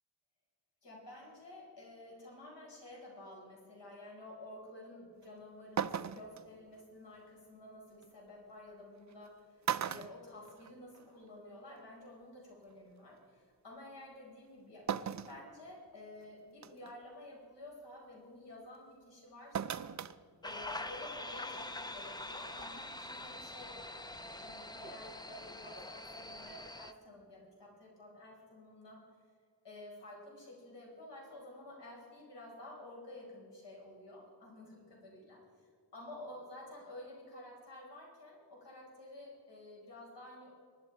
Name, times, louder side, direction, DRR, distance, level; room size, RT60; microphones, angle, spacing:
voice 1, 0.8-19.9 20.4-24.0 24.4-29.0 29.6-40.5, left 1 dB, 75° left, -3 dB, 5.2 m, -51 dB
sound 1, 5.2-5.3 5.8-6.4 8.0-8.1 9.1-9.3 9.6-11.0 11.4-11.5 12.7-12.8 14.9-15.4 15.9-16.0 16.6-16.9 19.5-20.2 20.5-20.6, right 8 dB, 45° right, 0.5 m, -37 dB
sound 2, 20.4-26.9, left 2 dB, 10° left, 0.5 m, -44 dB
23.5 x 11.5 x 4.6 m, 2.1 s
wide cardioid pair, 155°, 43 cm